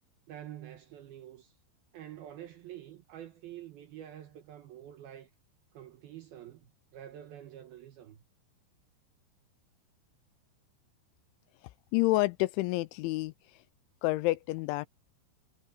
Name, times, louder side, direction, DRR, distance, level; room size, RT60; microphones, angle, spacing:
voice 1, 0.3-1.5 1.9-5.3 5.7-8.2, right 11 dB, 75° right, 2.4 m, -47 dB
voice 2, 11.9-13.3 14.0-14.9, left 19 dB, 85° left, 2.8 m, -28 dB
omnidirectional pair, 5.6 m